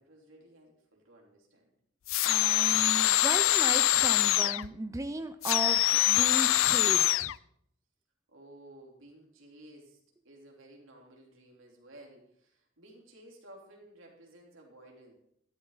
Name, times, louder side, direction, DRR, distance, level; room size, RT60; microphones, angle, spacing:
voice 1, 0.0-1.7 8.3-15.1, right 1 dB, 75° right, 0 dB, 3.7 m, -55 dB
sound 1, 2.1-4.7 5.4-7.3, left 15 dB, 75° left, 0.4 m, -24 dB
voice 2, 2.2-7.3, right 2 dB, 15° right, 8 dB, 0.5 m, -36 dB
14.5 x 11.5 x 4.1 m, 0.71 s
head